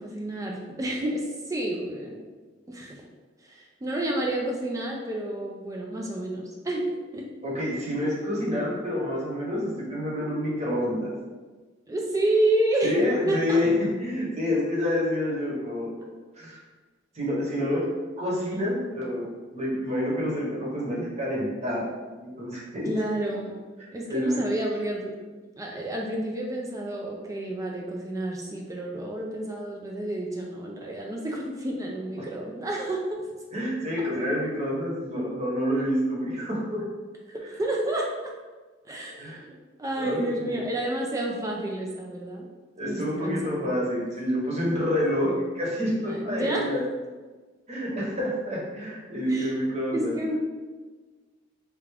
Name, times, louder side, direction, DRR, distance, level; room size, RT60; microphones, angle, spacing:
voice 1, 0.0-2.3 2.7-3.0 3.4-7.3 11.9-13.6 22.9-23.6 23.9-25.1 25.6-33.2 37.3-38.1 38.9-42.4 42.8-43.7 45.2-45.4 46.0-46.7 49.3-49.5 49.9-50.4, right 1 dB, 20° right, -1 dB, 0.3 m, -30 dB
voice 2, 7.4-11.1 12.8-13.7 14.0-15.9 16.4-16.6 17.1-17.8 18.2-19.3 19.5-21.8 22.2-22.9 23.8-24.4 32.2-32.3 33.5-36.8 39.2-39.4 40.0-40.6 42.8-46.8 47.7-50.2, equal, 35° right, -5 dB, 1.0 m, -28 dB
3.3 x 2.4 x 3.3 m, 1.3 s
head